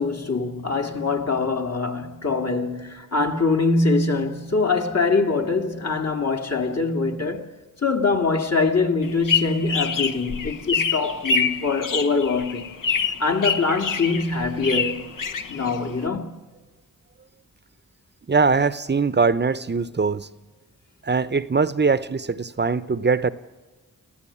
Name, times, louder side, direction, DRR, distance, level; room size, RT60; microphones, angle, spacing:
voice 1, 0.0-7.5 7.8-12.7 13.2-15.1 15.5-16.4, left 3 dB, 45° left, 2.1 m, -23 dB
sound 1, 9.0-16.1, left 5 dB, 65° left, 1.1 m, -26 dB
voice 2, 18.3-20.3 21.0-23.3, right 4 dB, 30° right, 0.8 m, -21 dB
25.0 x 15.0 x 8.6 m
cardioid pair, 55°, 34 cm